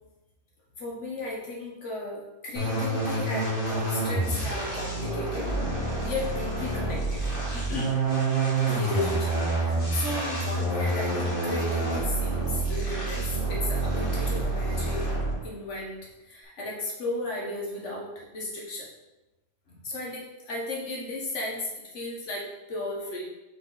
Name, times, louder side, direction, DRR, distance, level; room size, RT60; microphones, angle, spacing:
voice 1, 0.8-5.5 6.0-8.0 8.7-15.1 15.4-18.9 19.7-23.3, left 2 dB, 65° left, -3 dB, 1.8 m, -35 dB
sound 1, 2.5-15.5, right 2 dB, 40° left, 2.3 m, -28 dB
6.0 x 4.8 x 4.2 m, 1.0 s
omnidirectional pair, 1.3 m